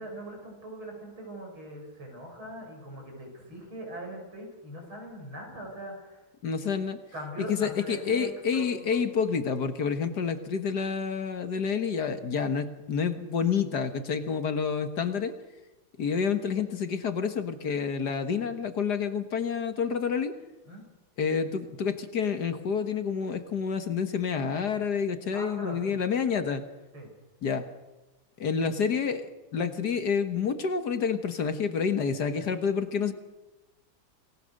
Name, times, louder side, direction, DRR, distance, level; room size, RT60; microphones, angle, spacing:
voice 1, 0.0-6.2 6.6-6.7 7.1-9.0 20.7-20.8 25.3-26.0 26.9-27.1, right 1 dB, 90° right, 2 dB, 7.8 m, -41 dB
voice 2, 6.4-7.0 7.5-15.4 16.0-20.3 21.2-26.6 27.4-27.7 28.4-29.3 29.5-33.1, left 6 dB, 55° left, 9 dB, 1.9 m, -28 dB
28.5 x 20.0 x 6.6 m, 1.1 s
omnidirectional pair, 2.2 m